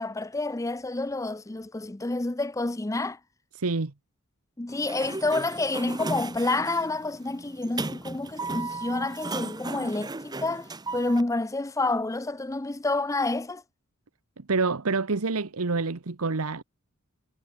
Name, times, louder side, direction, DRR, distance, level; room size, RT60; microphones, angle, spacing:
voice 1, 0.0-3.2 4.6-13.6, left 2 dB, 15° left, 0.6 m, -29 dB
voice 2, 3.5-3.9 14.4-16.6, right 4 dB, 70° right, 1.1 m, -27 dB
Sliding door, 4.7-11.2, right 3 dB, 20° right, 1.0 m, -36 dB
head